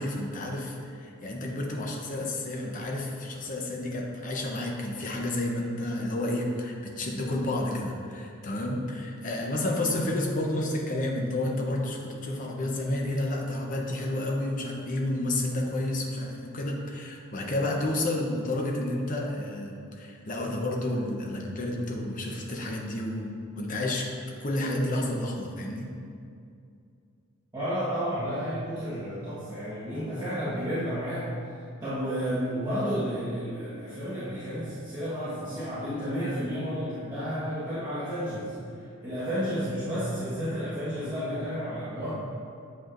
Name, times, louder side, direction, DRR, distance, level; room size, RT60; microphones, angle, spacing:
voice 1, 0.0-24.1 24.4-25.9, left 1 dB, 40° left, 0 dB, 0.7 m, -30 dB
voice 2, 27.5-31.3 31.8-42.1, equal, 20° right, -14 dB, 1.3 m, -31 dB
7.7 x 5.2 x 2.5 m, 2.4 s
head